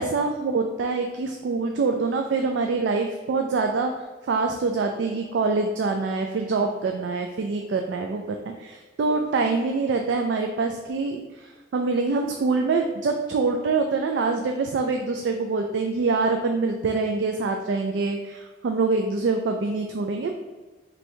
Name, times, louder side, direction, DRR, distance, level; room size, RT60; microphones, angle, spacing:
voice 1, 0.0-3.9 4.2-20.4, right 4 dB, 75° right, 4 dB, 0.3 m, -25 dB
3.2 x 2.7 x 4.4 m, 1.3 s
head